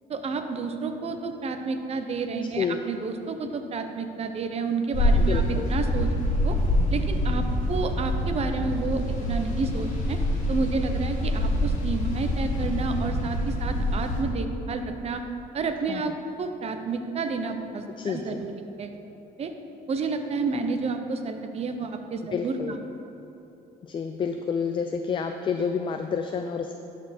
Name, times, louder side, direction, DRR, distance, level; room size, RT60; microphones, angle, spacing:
voice 1, 0.1-5.4 5.7-6.1 6.4-6.6 6.9-10.2 10.5-15.2 15.5-18.5 18.8-18.9 19.4-19.5 19.9-22.8, right 4 dB, 40° right, 7 dB, 0.7 m, -30 dB
sound 1, 4.9-14.2, left 1 dB, 45° left, 1.8 m, -26 dB
voice 2, 5.2-5.7 15.9-16.0 18.0-18.4 22.3-22.8 23.8-26.7, left 6 dB, 30° left, 6 dB, 0.3 m, -29 dB
11.5 x 4.4 x 4.3 m, 3.0 s
cardioid pair, 110°, 17 cm